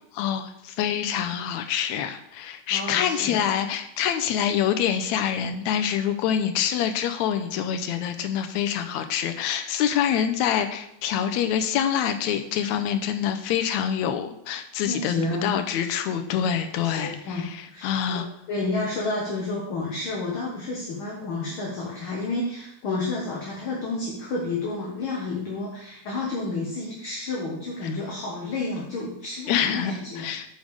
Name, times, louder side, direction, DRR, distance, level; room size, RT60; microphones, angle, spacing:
voice 1, 0.1-15.1 15.4-18.3 27.8-27.9 29.5-30.5, left 9 dB, 80° left, 7 dB, 1.9 m, -26 dB
voice 2, 2.7-3.4 14.9-15.6 16.7-17.4 17.7-30.3, left 3 dB, 50° left, -3 dB, 2.0 m, -30 dB
7.2 x 5.2 x 6.4 m, 0.75 s
omnidirectional pair, 3.4 m